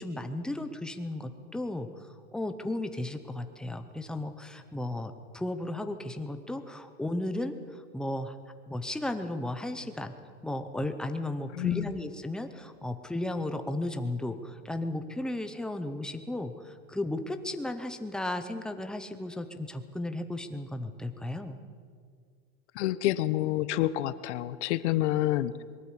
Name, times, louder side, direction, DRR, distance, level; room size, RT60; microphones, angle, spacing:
voice 1, 0.0-1.9 2.3-8.3 8.7-10.1 10.4-21.6, left 1 dB, ahead, 8 dB, 0.6 m, -35 dB
voice 2, 11.5-11.9 22.7-25.6, left 14 dB, 50° left, 15 dB, 1.0 m, -28 dB
22.5 x 13.0 x 9.6 m, 2.1 s
supercardioid pair, 155°, 43 cm